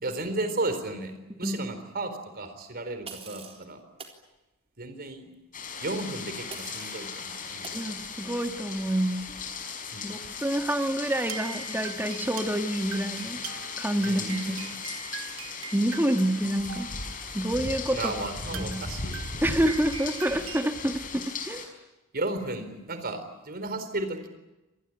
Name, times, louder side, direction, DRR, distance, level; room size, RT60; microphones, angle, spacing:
voice 1, 0.0-3.8 4.8-5.3 5.8-8.2 9.9-10.2 14.0-14.7 17.9-19.4 22.1-24.3, right 2 dB, 50° right, 9 dB, 4.1 m, -34 dB
sound 1, 3.0-3.6 4.0-4.2 6.5-7.1 7.6-7.8, right 5 dB, 30° right, 3.8 m, -43 dB
sound 2, 5.5-21.6, left 4 dB, 40° left, 5.7 m, -37 dB
voice 2, 7.7-9.2 10.0-13.4 13.8-14.6 15.7-16.9 17.3-18.1 18.5-18.8 19.4-21.6, right 1 dB, 10° right, 5 dB, 1.8 m, -28 dB
sound 3, 11.1-17.1 17.8-17.9 18.4-20.6, right 8 dB, 70° right, 2.0 m, -42 dB
27.0 x 20.0 x 10.0 m, 1.0 s
head